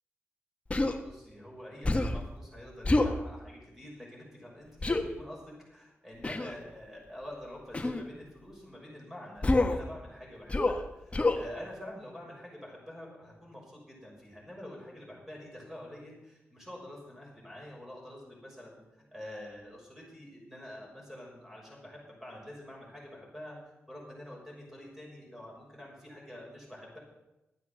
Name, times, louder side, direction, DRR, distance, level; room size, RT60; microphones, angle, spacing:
Human voice, 0.7-1.0 1.8-2.2 2.8-3.2 4.8-5.0 6.2-6.5 7.7-8.0 9.4-9.8 10.5-10.8 11.1-11.4, left 2 dB, 25° left, 1.4 m, -27 dB
voice 1, 0.8-18.8 19.1-27.0, left 1 dB, 5° right, -2 dB, 6.2 m, -47 dB
13.0 x 9.2 x 7.7 m, 0.97 s
cardioid pair, 80°, 5 cm